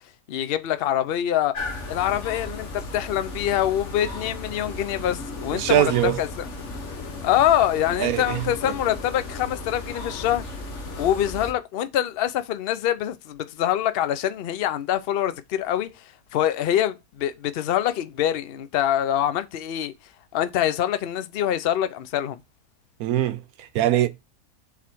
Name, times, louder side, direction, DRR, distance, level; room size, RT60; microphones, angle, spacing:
voice 1, 0.3-1.5 1.9-6.5 7.2-10.4 11.0-16.0 16.3-19.9 20.3-22.4, left 11 dB, 65° left, 0.6 m, -25 dB
sound 1, 1.5-11.5, left 2 dB, 50° left, 1.5 m, -35 dB
voice 2, 5.5-6.2 8.0-8.4 23.0-24.1, right 11 dB, 70° right, 1.0 m, -22 dB
7.0 x 4.1 x 4.5 m
omnidirectional pair, 1.7 m